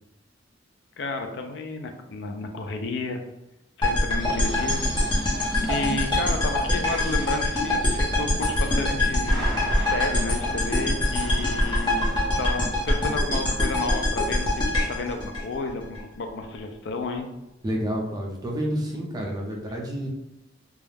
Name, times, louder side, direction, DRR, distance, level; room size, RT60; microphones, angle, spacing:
voice 1, 1.0-3.2 3.8-4.8 5.7-17.3, left 3 dB, 65° left, 5 dB, 0.4 m, -32 dB
sound 1, 3.8-16.0, left 1 dB, 25° left, 0.7 m, -24 dB
sound 2, 4.2-12.8, equal, 5° left, 0.9 m, -37 dB
voice 2, 17.6-20.1, equal, 20° right, -1 dB, 0.5 m, -29 dB
2.3 x 2.1 x 3.2 m, 0.90 s
head